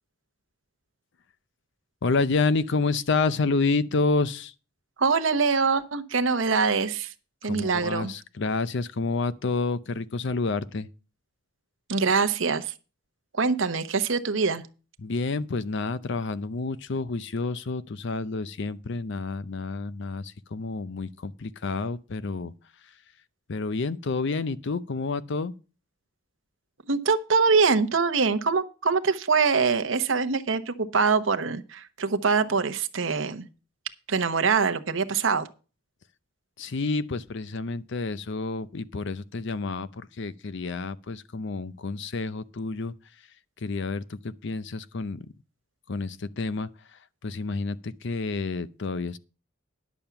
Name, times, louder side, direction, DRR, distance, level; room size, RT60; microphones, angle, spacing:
voice 1, 2.0-4.5 7.4-10.9 15.0-22.5 23.5-25.5 36.6-42.9 43.6-45.3 45.9-49.2, left 3 dB, 65° left, 0.6 m, -29 dB
voice 2, 5.0-7.1 7.4-8.1 11.9-12.7 13.3-14.7 26.9-33.5 34.1-35.5, right 5 dB, 70° right, 0.9 m, -24 dB
10.5 x 7.1 x 5.8 m
head